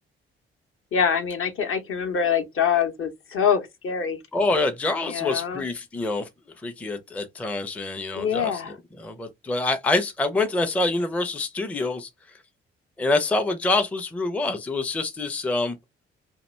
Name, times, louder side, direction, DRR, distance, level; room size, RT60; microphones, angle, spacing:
voice 1, 0.9-4.2 5.0-5.6 8.1-8.8, left 7 dB, 45° left, 0.7 m, -25 dB
voice 2, 4.3-6.3 6.6-12.1 13.0-15.8, left 2 dB, 5° left, 0.4 m, -26 dB
2.4 x 2.1 x 3.0 m
hypercardioid pair, 45°, 29 cm